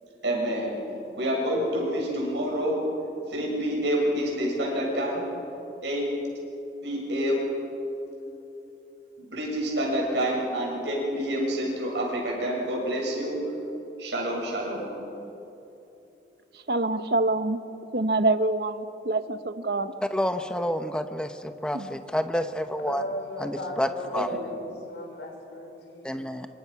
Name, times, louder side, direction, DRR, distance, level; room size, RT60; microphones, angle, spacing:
voice 1, 0.2-0.8 1.2-2.8 3.3-5.2 5.8-6.1 6.8-7.5 9.2-13.4 14.0-14.9 24.1-24.5, equal, 90° right, -3 dB, 7.6 m, -28 dB
voice 2, 16.5-17.6 17.9-19.9 21.7-21.9, right 2 dB, 60° right, 10 dB, 1.0 m, -26 dB
voice 3, 20.1-23.0 23.4-24.3 26.0-26.5, equal, 5° left, 8 dB, 1.0 m, -29 dB
voice 4, 22.9-26.4, left 1 dB, 90° left, 1 dB, 5.5 m, -37 dB
26.5 x 23.5 x 6.0 m, 2.9 s
head